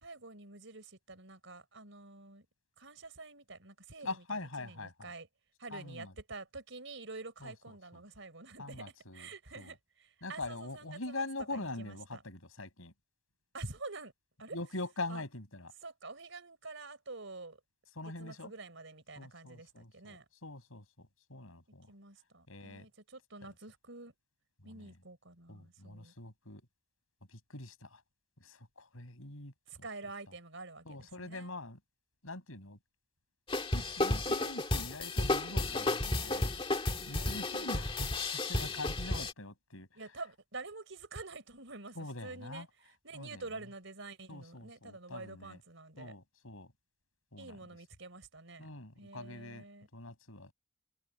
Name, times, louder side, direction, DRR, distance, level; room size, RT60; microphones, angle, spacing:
voice 1, 0.0-2.5 2.8-5.3 5.6-11.2 11.5-12.2 13.5-14.1 14.4-14.6 15.1-15.2 15.8-17.6 18.0-20.2 21.9-24.1 24.6-26.1 29.7-30.9 31.2-31.5 35.5-35.9 37.1-37.8 39.9-46.2 47.4-48.7 49.0-49.9, right 3 dB, 65° right, 4.3 m, -48 dB
voice 2, 4.0-5.1 5.7-6.1 7.4-8.0 8.6-9.3 9.6-9.7 10.2-12.9 14.5-15.7 18.0-18.5 19.2-21.9 22.5-22.9 23.4-23.5 24.6-24.9 25.5-26.6 27.3-28.0 28.4-29.5 30.9-31.8 32.2-32.8 33.6-36.5 37.0-39.9 42.0-42.7 43.1-43.4 44.3-45.6 46.0-46.7 47.3-47.6 48.6-49.7 49.9-50.5, left 2 dB, 85° left, 5.9 m, -44 dB
sound 1, 33.5-39.3, left 2 dB, 25° left, 1.9 m, -33 dB
open air
head